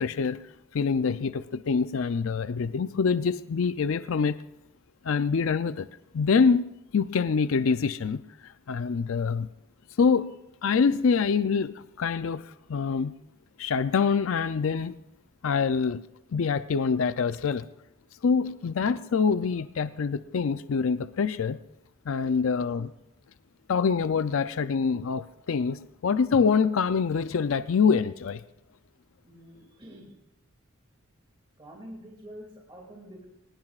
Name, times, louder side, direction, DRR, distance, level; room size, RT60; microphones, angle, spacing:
voice 1, 0.0-4.4 5.0-5.9 6.1-9.5 10.0-10.3 10.6-13.2 13.6-15.0 15.4-16.1 16.3-17.7 18.2-21.6 22.1-22.9 23.7-28.4, left 5 dB, 65° left, 12 dB, 0.4 m, -25 dB
voice 2, 29.2-30.1 31.6-33.2, equal, 25° right, -2 dB, 2.4 m, -46 dB
22.5 x 19.5 x 2.4 m, 0.85 s
head